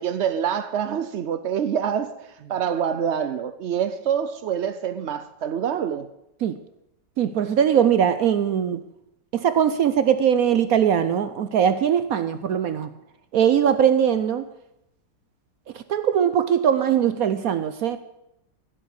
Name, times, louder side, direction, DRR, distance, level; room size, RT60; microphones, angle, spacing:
voice 1, 0.0-6.1, right 8 dB, 80° right, 0.6 m, -26 dB
voice 2, 7.2-8.8 9.3-12.9 13.3-14.5 15.7-18.0, right 8 dB, 65° right, 0.9 m, -21 dB
15.5 x 7.6 x 8.3 m
omnidirectional pair, 2.0 m